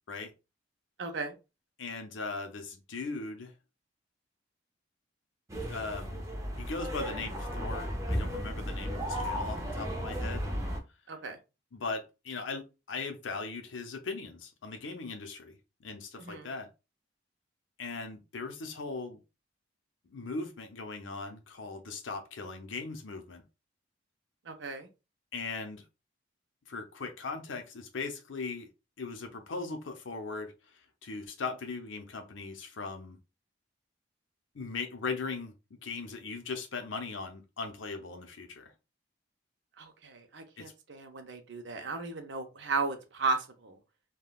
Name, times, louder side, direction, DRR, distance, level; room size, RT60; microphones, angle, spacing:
voice 1, 1.0-1.3 11.1-11.4 16.2-16.5 24.5-24.9 39.8-43.8, right 3 dB, 70° right, 0.6 m, -35 dB
voice 2, 1.8-3.5 5.7-6.2 6.6-10.5 11.7-16.7 17.8-19.2 20.1-23.4 25.3-25.8 26.7-28.7 29.0-30.5 31.0-33.2 34.5-38.7 40.6-40.7, left 4 dB, 80° left, 0.6 m, -39 dB
sound 1, 5.5-10.8, equal, 15° right, 0.5 m, -34 dB
3.5 x 2.3 x 2.3 m
head